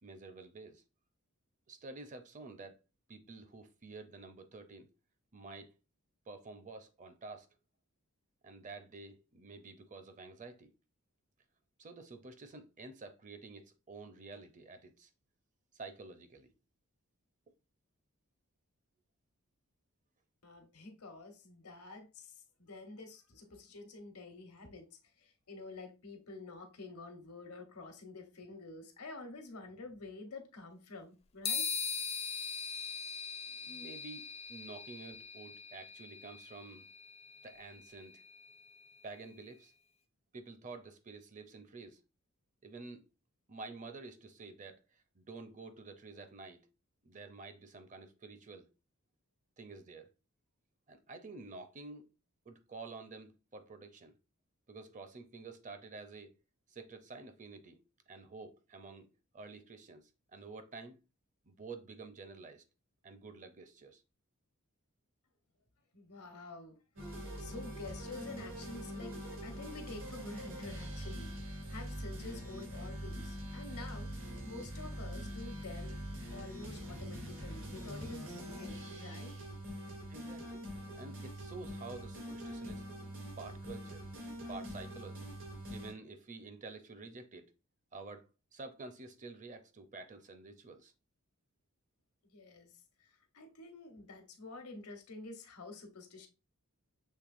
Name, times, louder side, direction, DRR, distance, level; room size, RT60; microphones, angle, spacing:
voice 1, 0.0-0.8 1.7-2.8 3.1-4.9 5.3-5.8 6.3-7.5 8.4-10.7 11.8-15.1 15.7-16.5 33.6-36.9 37.4-38.2 39.0-39.7 40.3-42.0 42.6-43.0 43.5-46.7 47.0-48.7 49.6-50.1 50.9-52.1 52.5-54.2 54.7-56.4 56.7-57.8 58.1-61.0 61.5-62.6 63.0-64.0 67.1-67.4 80.1-80.7 80.9-82.8 83.4-84.1 84.5-85.3 85.7-87.5 87.9-90.9, right 3 dB, 35° right, 0.6 m, -50 dB
voice 2, 20.4-31.8 65.9-66.8 67.1-69.1 69.4-76.0 76.3-79.3 92.3-92.7 93.0-96.3, left 3 dB, 85° left, 1.2 m, -49 dB
sound 1, 31.5-39.1, left 6 dB, 25° left, 0.5 m, -41 dB
sound 2, 67.0-85.9, equal, 75° right, 2.7 m, -44 dB
6.5 x 3.3 x 2.5 m
head